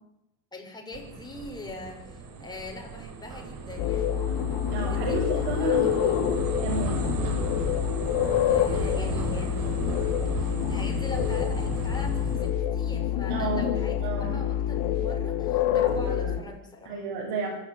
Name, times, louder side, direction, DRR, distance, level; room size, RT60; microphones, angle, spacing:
voice 1, 0.5-4.2 4.9-6.0 8.5-9.8 10.4-17.0, left 2 dB, 10° left, 0 dB, 6.9 m, -42 dB
sound 1, 0.9-12.5, right 4 dB, 45° right, 4.5 m, -35 dB
sound 2, 3.8-16.4, left 10 dB, 65° left, 3.2 m, -27 dB
voice 2, 4.7-6.0 6.6-7.0 13.3-14.4 15.7-16.4 16.8-17.5, right 3 dB, 70° right, -3 dB, 7.6 m, -32 dB
25.0 x 13.0 x 9.1 m, 0.89 s
supercardioid pair, 115°, 48 cm